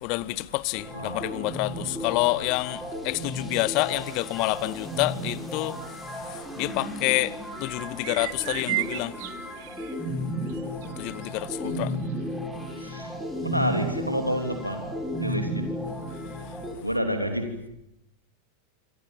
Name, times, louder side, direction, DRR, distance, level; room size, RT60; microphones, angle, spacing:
voice 1, 0.0-5.8 6.3-9.2 11.0-11.9, left 21 dB, 45° left, 0.9 m, -28 dB
sound 1, 0.7-16.7, equal, ahead, 6.6 m, -34 dB
voice 2, 0.9-1.4 2.0-2.1 11.6-12.0 12.8-14.9 15.2-15.7 16.8-17.5, equal, 90° right, 3.2 m, -29 dB
sound 2, 7.9-9.9 10.5-10.9 11.2-11.3 12.0-12.1, right 18 dB, 50° right, 0.9 m, -33 dB
26.5 x 25.5 x 7.1 m
figure-of-eight pair, 90°, 0 cm